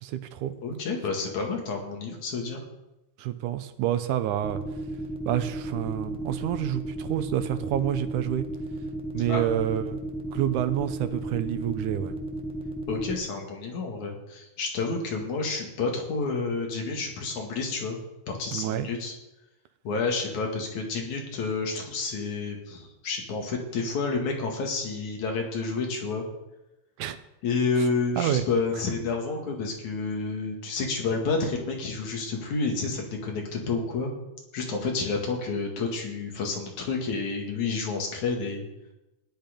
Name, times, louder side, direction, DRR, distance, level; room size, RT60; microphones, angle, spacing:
voice 1, 0.0-0.5 3.2-4.6 5.3-8.5 9.1-10.0 10.3-12.2 18.5-18.9 27.0-27.2 28.2-28.4, right 12 dB, 85° right, 11 dB, 2.3 m, -28 dB
voice 2, 0.6-2.6 9.3-9.4 12.9-18.0 18.3-19.1 19.9-26.3 27.4-34.1 34.5-38.7, left 4 dB, 70° left, 1 dB, 3.5 m, -29 dB
sound 1, 4.4-13.2, right 1 dB, 5° right, 0.5 m, -34 dB
15.0 x 10.5 x 5.2 m, 0.97 s
omnidirectional pair, 3.5 m